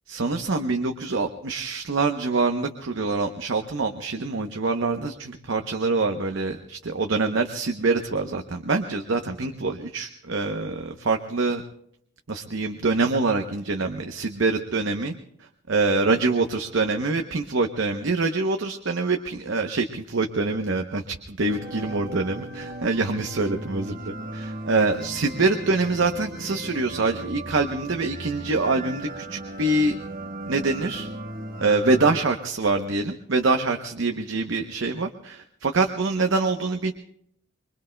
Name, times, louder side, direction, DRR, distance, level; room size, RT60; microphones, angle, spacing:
voice 1, 0.1-11.6 12.3-15.1 15.7-29.9 30.5-31.1 31.6-36.9, right 3 dB, 70° right, 5 dB, 0.8 m, -25 dB
sound 1, 21.5-32.2, right 1 dB, 45° right, 1.3 m, -37 dB
24.5 x 23.0 x 2.2 m, 0.71 s
head